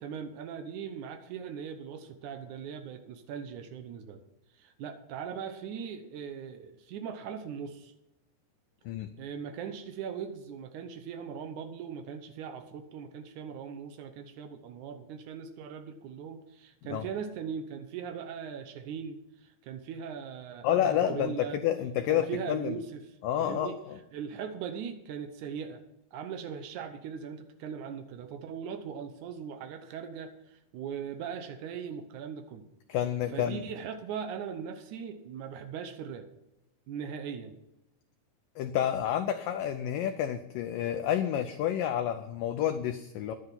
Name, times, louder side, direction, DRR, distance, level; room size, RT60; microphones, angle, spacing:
voice 1, 0.0-4.2 4.5-7.9 9.2-21.6 22.1-22.9 23.4-23.8 24.1-25.8 26.1-32.7 33.3-36.3 36.9-37.6, right 7 dB, 85° right, 7 dB, 1.7 m, -40 dB
voice 2, 20.6-22.8 23.2-23.7 32.9-33.6 38.6-43.3, left 10 dB, 85° left, 8 dB, 1.9 m, -29 dB
11.0 x 10.0 x 5.8 m, 0.91 s
omnidirectional pair, 4.8 m